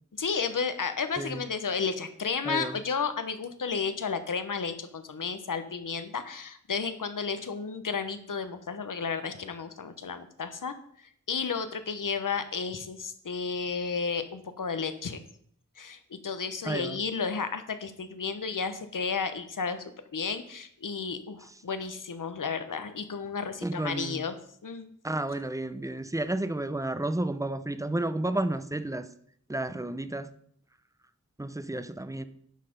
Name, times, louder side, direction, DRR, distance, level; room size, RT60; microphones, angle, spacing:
voice 1, 0.2-10.7 11.3-15.2 15.8-19.8 20.1-24.4 24.6-24.9, left 5 dB, 75° left, 10 dB, 1.0 m, -32 dB
voice 2, 2.5-2.8 16.6-17.0 23.6-24.2 25.0-29.1 29.5-30.3 31.4-32.2, right 1 dB, 10° right, 12 dB, 0.6 m, -31 dB
9.9 x 5.8 x 5.2 m, 0.65 s
wide cardioid pair, 80°, 32 cm